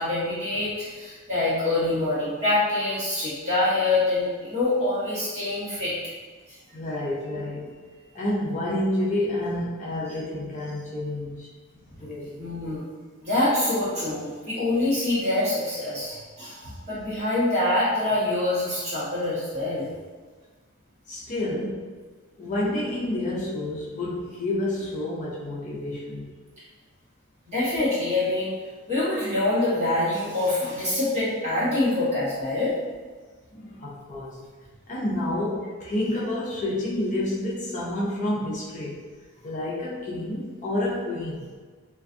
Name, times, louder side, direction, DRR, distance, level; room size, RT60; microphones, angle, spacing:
voice 1, 0.0-5.9 6.5-6.6 12.0-12.1 12.4-12.8 13.2-19.9 27.5-28.5 28.9-32.7, left 2 dB, 35° right, -11 dB, 1.2 m, -25 dB
voice 2, 6.7-11.5 12.0-12.4 21.1-21.8 22.4-26.3 33.5-34.4 34.9-39.0 39.4-41.5, left 1 dB, 40° left, -6 dB, 0.5 m, -29 dB
2.5 x 2.3 x 2.5 m, 1.5 s
head